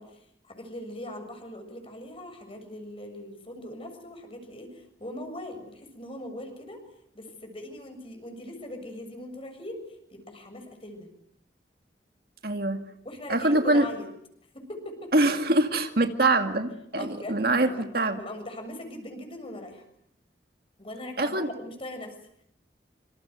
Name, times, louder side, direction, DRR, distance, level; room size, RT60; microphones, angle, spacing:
voice 1, 0.0-6.8 7.1-11.1 13.0-14.1 14.5-15.1 16.9-17.9 18.2-19.8 20.8-22.1, left 1 dB, 30° left, 6 dB, 7.1 m, -40 dB
voice 2, 12.4-12.8 13.3-13.9 15.1-18.2 21.2-21.5, right 2 dB, 55° right, 6 dB, 2.2 m, -24 dB
27.0 x 26.5 x 8.0 m, 0.73 s
head